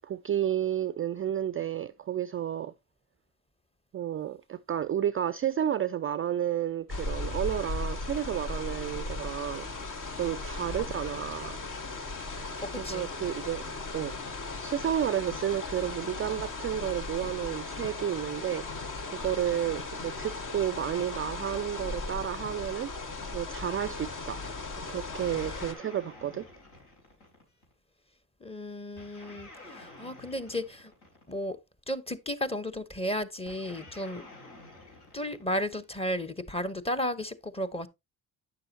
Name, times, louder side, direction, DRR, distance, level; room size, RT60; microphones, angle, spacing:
voice 1, 0.0-2.7 3.9-9.7 10.2-11.6 12.8-14.1 14.6-18.6 19.2-22.9 23.3-24.4 24.9-26.5, right 10 dB, 30° right, 0.4 m, -31 dB
sound 1, 6.9-25.7, left 3 dB, 45° left, 1.6 m, -37 dB
voice 2, 12.6-13.1 28.4-30.9 31.3-31.6 31.9-34.2 35.1-37.9, equal, 15° left, 1.0 m, -34 dB
sound 2, 25.1-27.7 29.0-31.5 33.5-36.0, left 2 dB, 70° left, 4.4 m, -50 dB
9.2 x 6.8 x 2.9 m
supercardioid pair, 65°, 42 cm